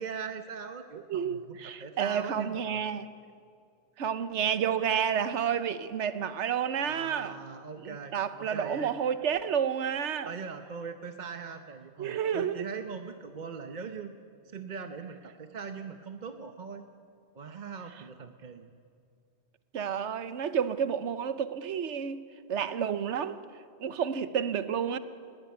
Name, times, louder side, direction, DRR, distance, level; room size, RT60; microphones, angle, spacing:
voice 1, 0.0-2.8 6.8-8.9 10.2-14.2 14.4-16.8 17.3-18.7, right 5 dB, 40° right, 7 dB, 0.9 m, -41 dB
voice 2, 1.1-3.1 4.0-7.4 7.8-10.3 12.0-12.7 19.7-22.2 22.5-23.4 23.8-25.0, right 8 dB, 70° right, 12 dB, 1.2 m, -30 dB
20.0 x 16.0 x 9.5 m, 2.3 s
omnidirectional pair, 1.2 m